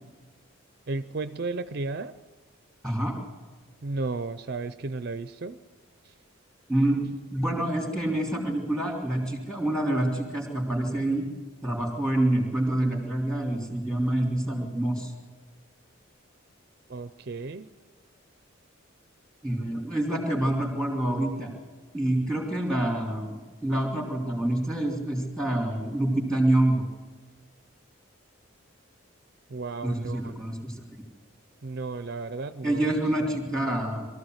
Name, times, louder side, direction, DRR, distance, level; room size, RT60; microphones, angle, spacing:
voice 1, 0.9-2.1 3.8-5.6 16.9-17.7 29.5-30.3 31.6-32.9 33.2-33.3, right 3 dB, 50° right, 12 dB, 0.5 m, -34 dB
voice 2, 2.8-3.1 6.7-7.0 7.3-11.3 11.6-15.1 19.4-21.5 21.9-26.8 29.8-30.8 32.6-34.1, right 1 dB, 5° left, 0 dB, 3.5 m, -27 dB
23.0 x 14.0 x 8.0 m, 1.4 s
head